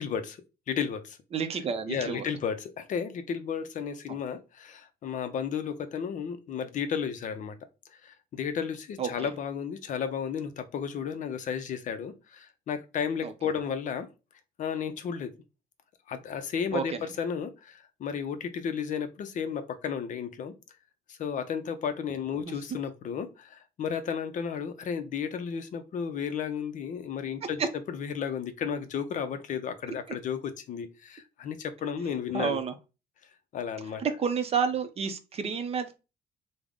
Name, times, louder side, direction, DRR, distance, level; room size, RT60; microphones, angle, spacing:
voice 1, 0.0-1.2 1.9-7.6 8.0-14.1 14.6-15.3 16.1-20.5 21.1-32.6 33.5-34.0, left 7 dB, 50° left, 0.5 m, -33 dB
voice 2, 1.3-2.2 9.0-9.1 13.2-13.3 16.7-16.8 22.5-22.6 32.3-32.7 34.0-36.0, right 6 dB, 35° right, 0.5 m, -30 dB
3.5 x 2.1 x 3.4 m
cardioid pair, 110°, 17 cm